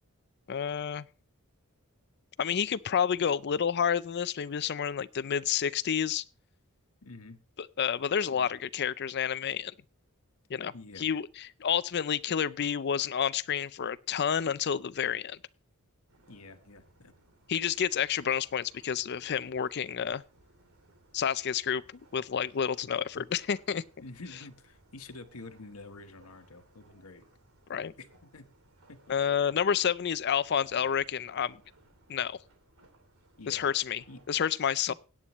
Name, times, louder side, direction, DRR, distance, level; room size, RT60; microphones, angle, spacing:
voice 1, 0.5-1.1 2.4-6.2 7.8-9.7 10.5-15.4 17.5-20.2 21.1-21.8 22.1-23.8 27.7-27.9 29.1-31.6 32.1-32.4 33.5-34.9, left 8 dB, 50° left, 0.5 m, -29 dB
voice 2, 7.0-7.4 8.3-8.5 10.7-11.1 16.3-17.1 23.1-23.3 24.0-27.2 28.0-28.5 28.9-29.1 33.4-33.6 34.1-34.2 34.9-35.0, left 3 dB, 85° left, 1.2 m, -48 dB
sound 1, 16.1-34.3, right 1 dB, 85° right, 2.8 m, -62 dB
17.0 x 9.9 x 3.1 m
head